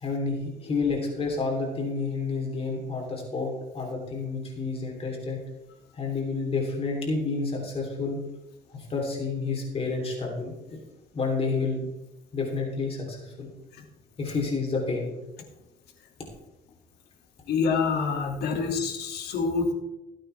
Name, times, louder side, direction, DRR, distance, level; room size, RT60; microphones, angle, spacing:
voice 1, 0.0-5.4 5.9-8.2 8.7-10.8 11.1-11.9 12.3-13.5 14.2-15.1, left 4 dB, 35° left, 0 dB, 3.5 m, -29 dB
voice 2, 17.5-19.7, left 5 dB, 75° left, 3 dB, 2.5 m, -26 dB
17.0 x 9.0 x 3.5 m, 0.99 s
cardioid pair, 110°, 17 cm